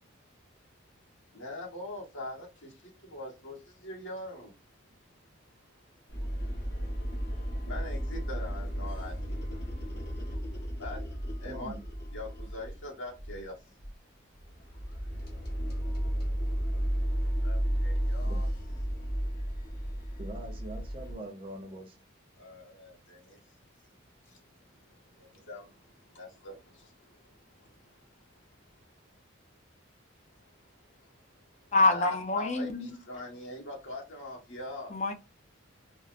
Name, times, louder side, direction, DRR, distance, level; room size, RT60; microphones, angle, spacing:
voice 1, 1.3-4.5 7.6-9.4 10.7-11.0 11.4-11.7 12.1-13.6 16.2-18.5 18.9-19.0 22.4-23.4 24.2-27.8 31.0-31.4 31.9-34.9, left 1 dB, 65° left, 1.2 m, -43 dB
sound 1, 6.1-12.8 13.2-13.5 13.8-13.9 14.4-21.1, equal, 50° left, 0.9 m, -33 dB
voice 2, 11.4-11.8 18.3-18.4 20.2-22.0, right 1 dB, 25° right, 0.6 m, -42 dB
voice 3, 31.7-33.0 34.9-35.1, left 3 dB, 35° left, 0.5 m, -26 dB
3.8 x 2.0 x 2.5 m
head